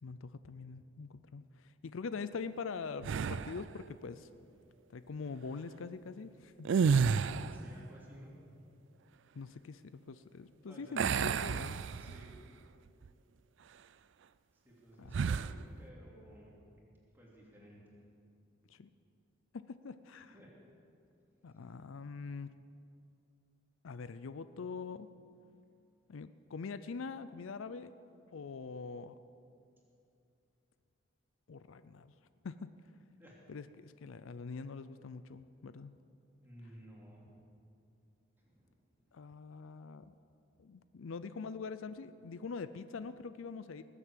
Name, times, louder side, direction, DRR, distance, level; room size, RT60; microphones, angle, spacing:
voice 1, 0.0-4.3 4.9-6.7 9.3-11.9 15.0-15.1 18.7-18.9 19.5-20.3 21.4-22.6 23.8-25.1 26.1-27.9 28.3-29.2 31.5-32.1 32.4-32.7 33.5-35.9 39.1-40.1 40.6-43.8, left 4 dB, 75° left, 13 dB, 0.5 m, -44 dB
sound 1, 3.0-3.7 6.6-7.7 11.0-12.4 12.9-13.1 15.1-15.6, right 6 dB, 60° right, 0.3 m, -31 dB
voice 2, 7.4-8.3 10.7-12.6 14.5-16.8 17.1-18.1 20.3-20.6 33.2-33.4 36.4-37.3 38.4-38.7 39.1-39.2, equal, 10° right, -4 dB, 2.9 m, -56 dB
19.5 x 8.0 x 7.5 m, 2.6 s
head